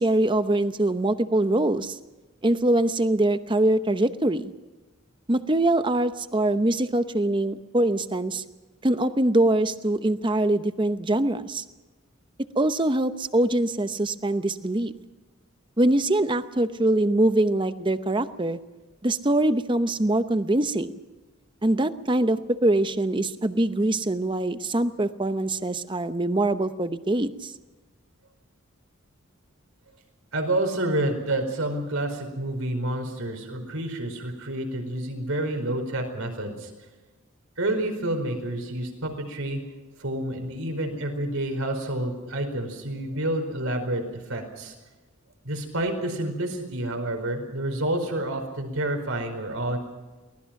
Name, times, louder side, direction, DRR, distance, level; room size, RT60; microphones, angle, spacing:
voice 1, 0.0-2.0 2.4-4.5 5.3-8.4 8.8-11.6 12.6-14.9 15.8-18.6 19.0-21.0 21.6-27.5, right 1 dB, 25° right, 11 dB, 0.8 m, -23 dB
voice 2, 30.3-36.7 37.6-39.6 40.0-44.7 45.4-49.8, right 1 dB, 80° right, 4 dB, 4.7 m, -29 dB
24.0 x 18.5 x 5.9 m, 1.2 s
head